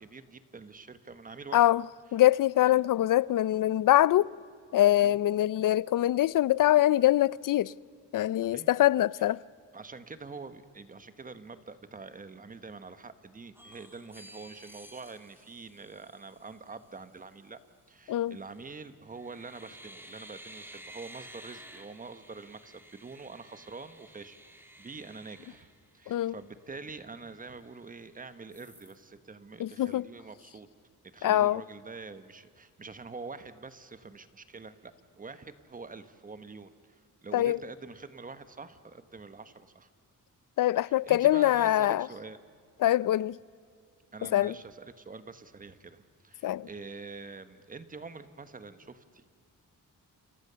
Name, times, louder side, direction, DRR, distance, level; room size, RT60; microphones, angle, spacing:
voice 1, 0.0-1.6 2.6-2.8 5.0-5.2 8.5-8.7 9.7-17.6 17.9-25.7 25.9-30.7 31.1-39.9 40.8-42.4 44.1-49.2, right 4 dB, 25° right, 1.2 m, -45 dB
voice 2, 1.5-1.8 2.1-4.3 4.7-7.7 8.1-9.4 18.1-18.4 26.1-26.3 29.6-30.1 31.2-31.6 37.3-37.6 40.6-42.1 42.8-43.4 44.3-44.5 46.4-46.7, left 13 dB, 70° left, 0.6 m, -24 dB
sound 1, 13.5-16.6 18.4-18.7 19.1-26.4 26.8-26.9 27.2-28.1 28.5-29.0, right 1 dB, 5° right, 1.7 m, -52 dB
29.5 x 27.0 x 6.9 m
wide cardioid pair, 165°, 33 cm